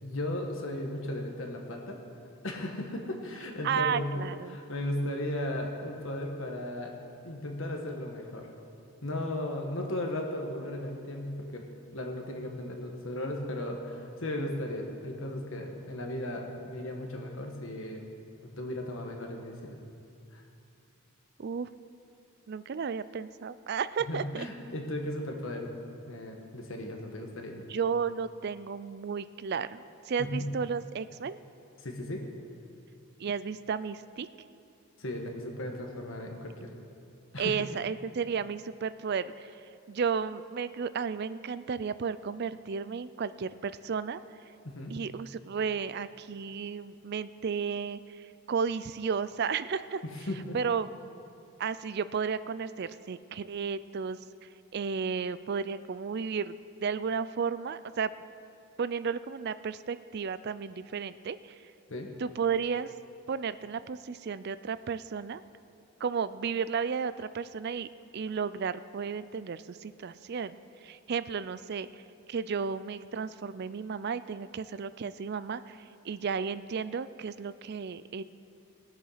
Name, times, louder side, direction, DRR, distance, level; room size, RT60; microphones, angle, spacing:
voice 1, 0.0-2.0 2.4-6.9 7.2-8.5 9.0-11.7 11.9-18.0 18.6-19.8 20.3-20.4 24.1-25.7 26.1-27.6 30.2-30.5 31.8-32.3 35.0-36.7 37.3-37.6 44.6-45.0 50.0-50.6 61.9-62.1, left 1 dB, 65° left, 2 dB, 1.4 m, -36 dB
voice 2, 3.6-4.6 21.4-21.7 22.5-24.5 27.7-31.4 33.2-34.3 37.4-39.5 39.9-44.2 44.9-50.0 50.5-50.9 51.6-54.2 54.7-56.6 56.8-58.1 58.8-61.4 62.2-62.9 63.3-65.4 66.0-67.9 68.1-70.6 70.8-72.0 72.3-78.2, right 6 dB, 50° right, 14 dB, 0.4 m, -33 dB
19.5 x 7.3 x 5.7 m, 2.6 s
head